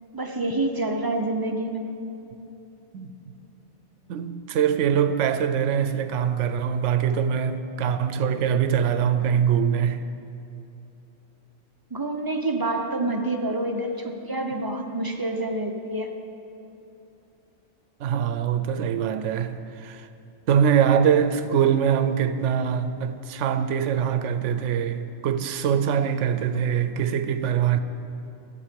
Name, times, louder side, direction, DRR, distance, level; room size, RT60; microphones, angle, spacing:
voice 1, 0.1-1.8 11.9-16.1, right 2 dB, 25° right, 0.5 m, -27 dB
voice 2, 4.1-10.0 18.0-20.1 20.5-27.8, right 8 dB, 80° right, 0.9 m, -23 dB
12.5 x 8.4 x 5.1 m
omnidirectional pair, 1.2 m